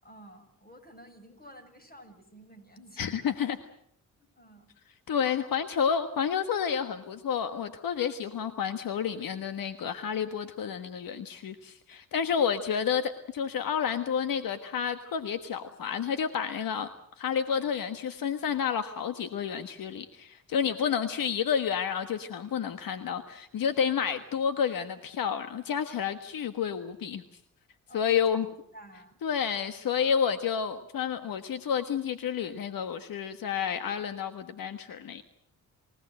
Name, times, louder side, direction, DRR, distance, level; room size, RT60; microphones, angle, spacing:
voice 1, 0.0-3.3 4.2-4.7 12.1-12.5 20.7-21.2 27.9-28.4 28.7-29.2, right 1 dB, 25° left, 6 dB, 7.4 m, -52 dB
voice 2, 3.0-3.6 5.1-16.9 17.2-27.2 27.9-28.5 29.2-35.2, left 7 dB, 75° left, 9 dB, 1.5 m, -30 dB
28.5 x 17.0 x 7.8 m, 0.66 s
cardioid pair, 60°, 34 cm